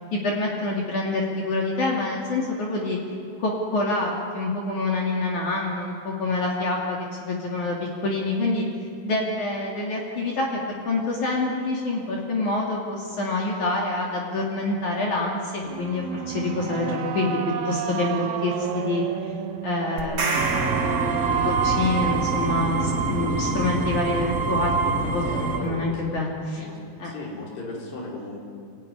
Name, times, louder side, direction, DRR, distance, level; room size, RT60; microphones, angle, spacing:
voice 1, 0.1-3.0 3.4-7.8 8.0-8.6 9.0-17.4 17.7-19.0 19.6-20.6 21.4-26.7 27.0-27.1, left 2 dB, 50° left, -3 dB, 3.8 m, -26 dB
sound 1, 15.6-23.6, right 8 dB, 70° right, 1.8 m, -31 dB
sound 2, 20.0-22.0, right 3 dB, 40° right, 3.2 m, -29 dB
sound 3, 20.3-25.6, right 3 dB, 25° right, 2.5 m, -25 dB
voice 2, 25.2-26.2 26.5-26.8 27.0-28.4, left 2 dB, 75° left, -3 dB, 6.8 m, -37 dB
26.0 x 18.0 x 10.0 m, 2.4 s
omnidirectional pair, 4.9 m